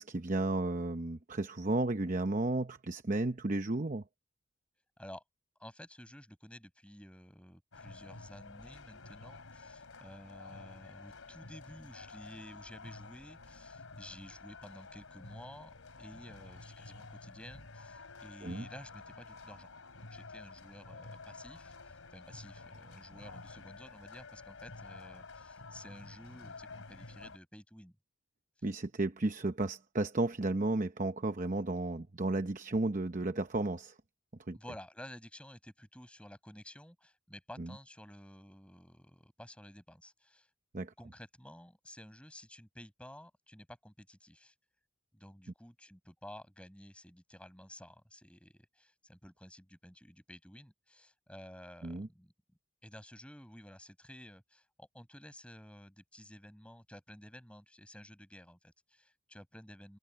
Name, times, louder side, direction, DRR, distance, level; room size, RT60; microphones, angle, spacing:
voice 1, 0.0-4.0 18.4-18.7 28.6-34.0 34.5-34.6 37.6-37.7 40.7-40.9 51.8-52.1, right 2 dB, 40° right, 0.8 m, -33 dB
voice 2, 5.6-27.9 34.5-40.5 41.0-44.5 45.1-52.3 52.8-60.0, left 1 dB, 5° left, 7.3 m, -52 dB
sound 1, 7.7-27.4, left 3 dB, 90° left, 3.1 m, -51 dB
head